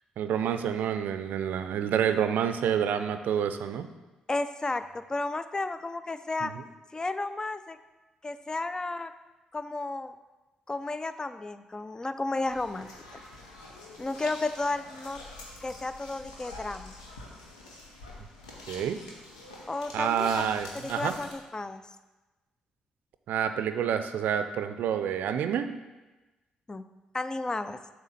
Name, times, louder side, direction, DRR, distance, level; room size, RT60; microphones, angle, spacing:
voice 1, 0.2-3.9 6.4-6.5 18.7-19.0 19.9-21.1 23.3-25.7, right 8 dB, 65° right, 9 dB, 0.4 m, -28 dB
voice 2, 4.3-6.5 6.9-7.8 8.2-9.1 9.5-10.1 10.7-12.9 14.0-15.2 15.6-16.9 19.7-20.3 20.8-21.8 26.7-26.8 27.1-27.8, left 2 dB, 20° left, 12 dB, 0.4 m, -33 dB
sound 1, 12.4-21.3, left 2 dB, 90° left, 0.8 m, -46 dB
7.2 x 3.2 x 5.7 m, 1.1 s
hypercardioid pair, 40°, 3 cm